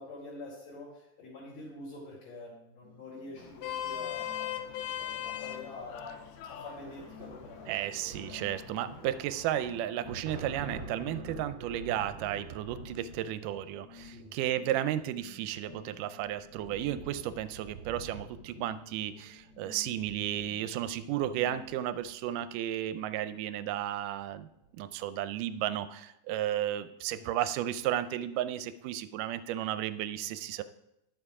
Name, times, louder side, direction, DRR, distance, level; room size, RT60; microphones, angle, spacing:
voice 1, 0.0-4.7 5.0-8.4 14.1-14.3 27.0-27.3, left 2 dB, 55° left, -7 dB, 3.7 m, -46 dB
sound 1, 2.8-21.7, left 8 dB, 70° left, 3.7 m, -55 dB
Vehicle horn car horn honking, 3.4-9.8, left 10 dB, 85° left, 2.4 m, -41 dB
sound 2, 6.7-22.4 23.6-23.8 24.1-24.8, right 3 dB, 55° right, 1.4 m, -48 dB
voice 2, 7.7-24.5 24.7-30.6, right 12 dB, 85° right, 13 dB, 2.1 m, -33 dB
11.5 x 7.5 x 4.8 m, 0.82 s
omnidirectional pair, 3.8 m